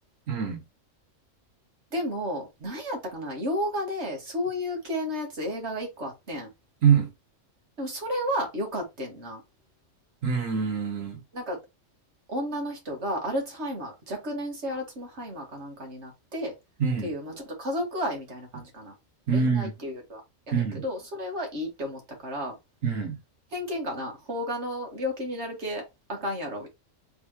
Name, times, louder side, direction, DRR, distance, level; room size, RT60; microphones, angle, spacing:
voice 1, 0.3-0.6 6.8-7.1 10.2-11.2 16.8-17.1 19.3-19.7 20.5-20.8 22.8-23.2, right 6 dB, 85° right, 1.5 m, -24 dB
voice 2, 1.9-6.5 7.8-9.4 11.3-11.6 12.3-16.5 17.0-18.9 19.3-20.2 20.5-22.6 23.5-25.8 26.1-26.7, equal, 60° right, 2.0 m, -32 dB
4.0 x 3.9 x 3.0 m
omnidirectional pair, 1.3 m